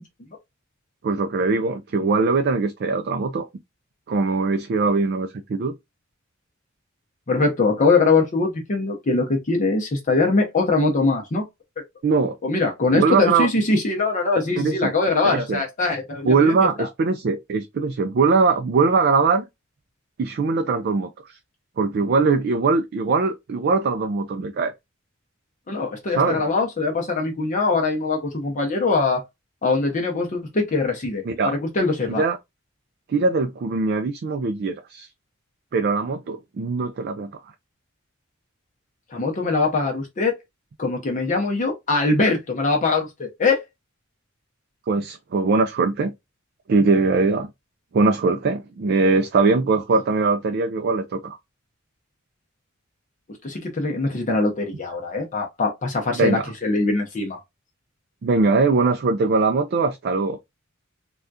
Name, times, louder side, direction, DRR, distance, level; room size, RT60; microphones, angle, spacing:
voice 1, 1.0-3.5 4.1-5.7 12.0-12.4 12.9-13.5 14.6-14.9 15.2-15.6 16.2-19.5 20.2-21.4 21.8-24.7 26.2-26.4 31.3-31.5 32.2-32.4 33.1-35.1 35.7-37.3 44.9-46.1 46.7-47.5 47.9-51.4 56.1-56.4 58.2-60.4, right 4 dB, 50° right, 0.3 m, -21 dB
voice 2, 7.3-11.4 12.4-16.9 25.7-29.2 29.6-32.2 39.1-40.3 40.8-43.6 53.4-57.4, left 3 dB, 35° left, 0.6 m, -22 dB
3.4 x 2.3 x 2.5 m
head